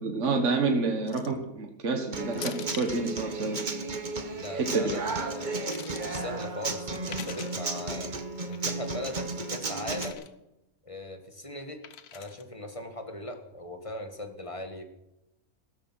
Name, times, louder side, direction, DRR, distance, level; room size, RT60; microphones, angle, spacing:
voice 1, 0.0-3.6 4.5-4.9, right 3 dB, 55° right, 4 dB, 1.9 m, -28 dB
sound 1, 1.1-1.4 2.3-3.0 4.4-4.7 5.3-6.1 6.9-7.6 8.5-8.9 9.8-10.3 11.8-12.4, left 8 dB, 80° left, 1.6 m, -43 dB
Human voice / Acoustic guitar, 2.1-10.1, right 3 dB, 35° right, 1.3 m, -34 dB
voice 2, 4.3-8.1 8.5-10.3 10.8-11.8 12.1-14.8, left 1 dB, 20° left, 5 dB, 1.8 m, -39 dB
16.5 x 13.0 x 6.2 m, 0.89 s
omnidirectional pair, 1.6 m